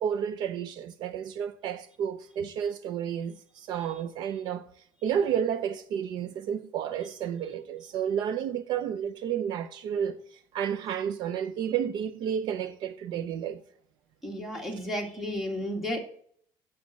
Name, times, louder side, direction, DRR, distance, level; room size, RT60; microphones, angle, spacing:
voice 1, 0.0-4.7 5.0-10.2 10.5-13.6, right 8 dB, 60° right, 0.6 m, -31 dB
voice 2, 14.2-16.0, equal, 5° right, 2.1 m, -32 dB
8.2 x 7.4 x 7.5 m
cardioid pair, 150°, 9 cm